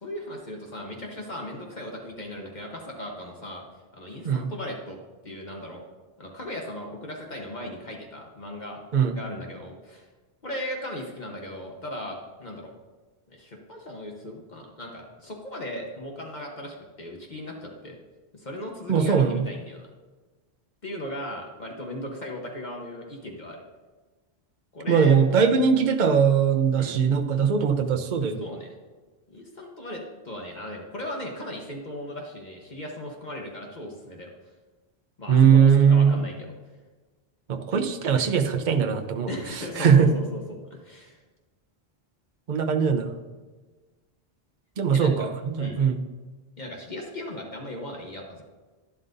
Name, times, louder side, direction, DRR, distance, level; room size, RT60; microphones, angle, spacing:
voice 1, 0.0-3.6 3.9-5.0 5.2-5.8 6.2-8.8 9.1-10.0 10.4-12.7 13.3-18.0 18.3-19.9 20.8-23.6 24.7-25.3 26.8-27.0 28.4-28.7 29.3-34.3 35.2-36.5 39.3-41.2 44.9-45.1 45.6-45.8 46.6-48.4, left 1 dB, 45° left, 0 dB, 1.2 m, -37 dB
voice 2, 18.9-19.4 24.9-28.4 35.3-36.2 37.5-39.3 39.8-40.1 42.5-43.1 44.8-46.0, right 6 dB, 50° right, 7 dB, 0.8 m, -20 dB
11.5 x 11.0 x 2.6 m, 1.3 s
omnidirectional pair, 1.0 m